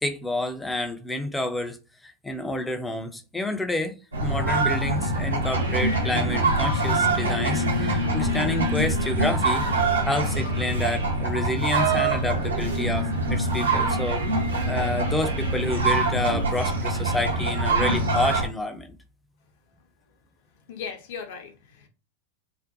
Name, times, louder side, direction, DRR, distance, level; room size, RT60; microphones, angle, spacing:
voice 1, 0.0-1.8 2.0-4.0 4.2-9.7 10.1-14.2 14.7-18.9, left 2 dB, 5° left, 0.4 m, -29 dB
sound 1, 4.1-18.5, right 2 dB, 80° right, 0.9 m, -24 dB
voice 2, 20.7-21.9, left 6 dB, 50° left, 0.6 m, -37 dB
2.5 x 2.1 x 2.5 m
figure-of-eight pair, 90°, 0 cm